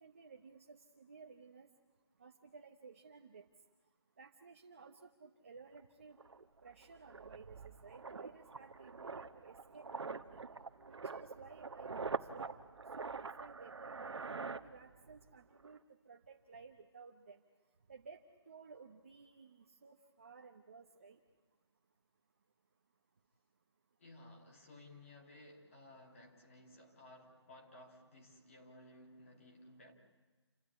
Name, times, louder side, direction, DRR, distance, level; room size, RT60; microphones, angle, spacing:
voice 1, 0.0-1.7 2.2-3.5 4.2-6.2 6.6-10.4 10.9-12.6 13.0-17.4 17.9-21.2, right 5 dB, 30° right, 3 dB, 1.0 m, -56 dB
sound 1, 5.8-5.9 6.2-15.3 15.5-15.8, right 4 dB, 75° right, 1.2 m, -45 dB
voice 2, 24.0-29.9, left 1 dB, 30° left, 1 dB, 2.7 m, -57 dB
28.5 x 13.0 x 9.7 m, 1.4 s
hypercardioid pair, 180°, 14 cm